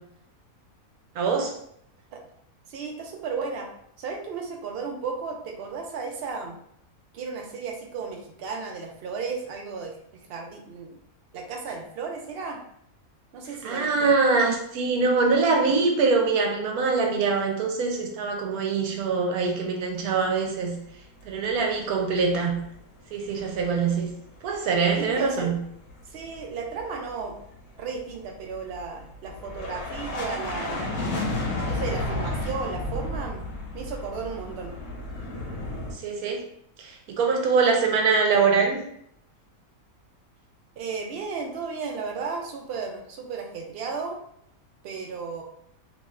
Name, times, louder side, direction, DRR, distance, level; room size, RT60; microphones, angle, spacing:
voice 1, 1.1-1.5 13.6-20.8 21.2-22.6 23.1-24.1 24.4-25.6 35.9-36.4 36.8-38.8, right 4 dB, 80° right, 2 dB, 1.1 m, -23 dB
voice 2, 2.7-3.7 4.0-6.6 7.1-11.0 11.3-12.6 13.3-14.1 24.9-25.5 26.1-27.4 27.8-31.1 31.6-33.4 33.7-34.7 40.8-44.2 44.8-45.4, right 5 dB, 60° right, 2 dB, 0.6 m, -34 dB
sound 1, 21.8-22.7 23.0-23.9 24.2-35.9, left 2 dB, 70° left, 1.1 m, -33 dB
2.9 x 2.3 x 3.1 m, 0.72 s
omnidirectional pair, 1.6 m